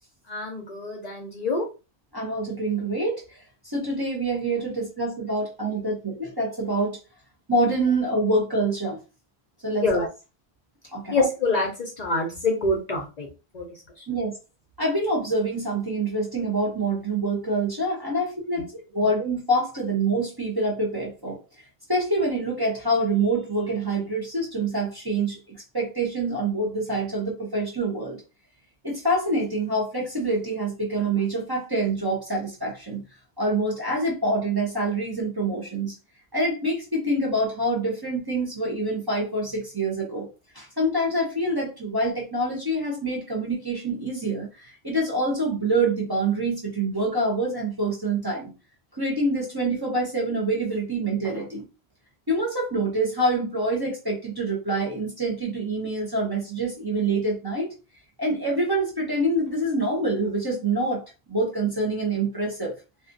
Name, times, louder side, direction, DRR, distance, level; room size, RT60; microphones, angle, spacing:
voice 1, 0.3-1.6 5.6-5.7 9.8-10.1 11.1-11.7 12.0-13.3 13.5-13.6, left 2 dB, 50° left, 0 dB, 0.6 m, -25 dB
voice 2, 2.1-7.0 7.5-9.0 9.6-10.1 10.9-11.2 14.1-14.4 14.8-21.4 21.9-28.2 28.8-33.0 33.4-35.9 36.3-40.3 40.5-48.5 49.0-51.6 52.3-57.7 58.2-61.0 61.3-62.7, right 2 dB, 25° right, -4 dB, 0.6 m, -26 dB
2.4 x 2.4 x 2.5 m, 0.30 s
omnidirectional pair, 1.1 m